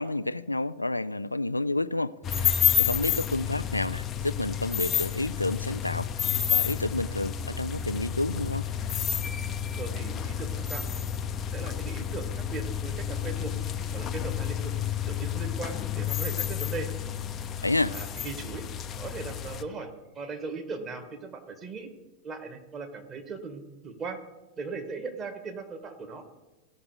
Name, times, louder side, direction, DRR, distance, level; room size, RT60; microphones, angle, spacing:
voice 1, 0.0-8.6 17.6-17.9, left 2 dB, 85° left, 0.3 m, -30 dB
sound 1, 2.2-19.6, left 9 dB, 30° left, 0.7 m, -30 dB
voice 2, 9.5-10.8 11.3-13.5 13.9-14.7 15.1-16.9 17.9-18.6 19.0-21.9 22.2-24.2 24.6-26.2, right 4 dB, 25° right, 1.8 m, -38 dB
16.5 x 5.9 x 5.0 m
figure-of-eight pair, 90°, 0 cm